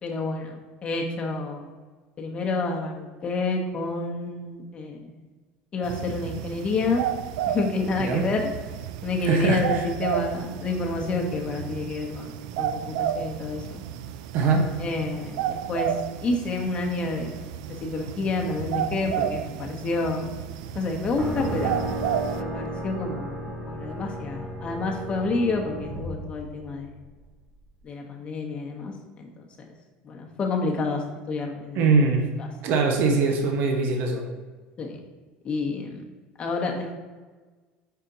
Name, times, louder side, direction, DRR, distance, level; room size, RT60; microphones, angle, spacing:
voice 1, 0.0-1.8 2.2-5.0 5.7-7.1 7.5-8.5 9.0-13.8 14.8-15.9 16.2-20.4 20.7-21.9 22.3-26.9 27.8-29.7 30.0-31.9 32.4-32.5 34.8-35.0 35.4-36.0 36.4-36.9, left 3 dB, 30° left, 1 dB, 1.0 m, -29 dB
sound 1, 5.8-22.4, right 10 dB, 90° right, 0.3 m, -32 dB
voice 2, 9.3-9.8 14.3-14.7 31.7-32.3 32.6-34.2, right 4 dB, 60° right, 3 dB, 0.9 m, -22 dB
sound 2, 21.2-27.1, right 1 dB, 15° right, 0.9 m, -33 dB
5.7 x 4.3 x 3.9 m, 1.3 s
cardioid pair, 130°, 4 cm